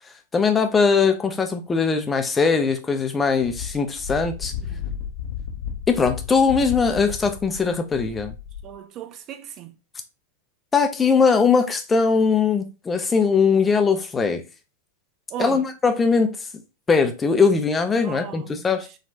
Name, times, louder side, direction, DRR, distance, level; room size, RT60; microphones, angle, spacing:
voice 1, 0.3-4.5 5.9-8.3 10.7-14.4 15.4-16.4 16.9-18.9, left 5 dB, 15° left, 0.5 m, -20 dB
Wind, 3.4-8.7, left 8 dB, 60° left, 0.7 m, -33 dB
voice 2, 8.6-9.7 15.3-15.6 18.0-19.0, right 10 dB, 35° right, 0.5 m, -36 dB
4.2 x 2.4 x 2.8 m
figure-of-eight pair, 90°, 0 cm